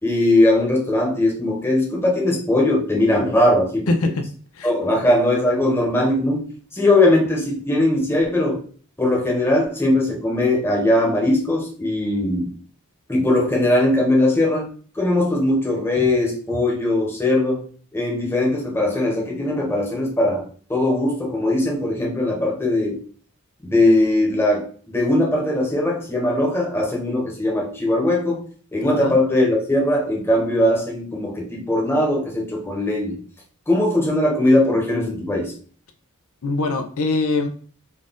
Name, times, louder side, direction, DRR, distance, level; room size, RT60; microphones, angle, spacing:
voice 1, 0.0-3.9 4.6-6.4 6.7-8.6 9.0-12.5 13.1-14.7 14.9-17.6 17.9-20.4 20.7-23.0 23.6-28.4 28.7-33.2 33.7-35.5, left 1 dB, 10° left, -2 dB, 1.0 m, -20 dB
voice 2, 3.9-4.2 4.5-4.7 28.8-29.2 36.4-37.5, left 3 dB, 70° left, 5 dB, 0.5 m, -23 dB
4.0 x 2.4 x 3.6 m, 0.43 s
head